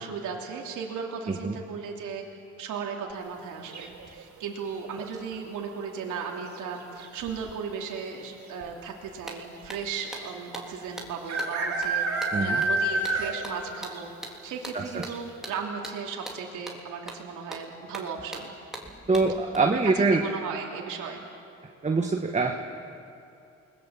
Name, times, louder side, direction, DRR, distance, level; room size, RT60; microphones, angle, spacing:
voice 1, 0.0-2.2 2.6-18.5 19.7-21.2, right 6 dB, 85° right, -1 dB, 3.1 m, -36 dB
sound 1, 3.7-4.2 6.0-6.4 6.7-6.8 7.0-7.5 8.3-8.4 8.6-8.7 10.2-10.3 11.3-13.6 13.9-14.0 14.5-14.6 15.1-15.2, right 2 dB, 65° right, 4.2 m, -28 dB
sound 2, 8.9-9.0 9.3-19.5, right 1 dB, ahead, 3.7 m, -42 dB
voice 2, 12.3-12.6 14.7-15.1 19.1-20.3 21.8-22.6, right 3 dB, 25° right, 3 dB, 1.6 m, -24 dB
28.5 x 21.0 x 7.5 m, 2.6 s
cardioid pair, 90°, 30 cm